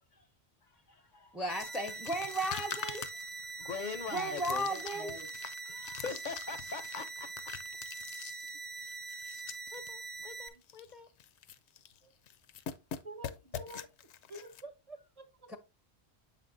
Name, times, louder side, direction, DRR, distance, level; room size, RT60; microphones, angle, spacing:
voice 1, 0.6-1.4 1.7-1.9 3.6-4.7 5.6-7.3 9.7-11.1, left 5 dB, 55° left, 0.6 m, -43 dB
voice 2, 1.3-3.0 4.1-5.1 15.5-15.6, right 1 dB, ahead, 0.3 m, -35 dB
sound 1, 1.5-10.5, right 3 dB, 70° right, 1.0 m, -43 dB
sound 2, 1.6-9.9 10.2-10.3 10.6-10.9 11.2-12.0 12.3-14.6, left 9 dB, 85° left, 0.9 m, -45 dB
voice 3, 4.7-5.3 6.1-6.2 12.0-12.1 13.0-15.5, right 2 dB, 40° right, 0.6 m, -48 dB
7.7 x 5.9 x 2.5 m
omnidirectional pair, 1.1 m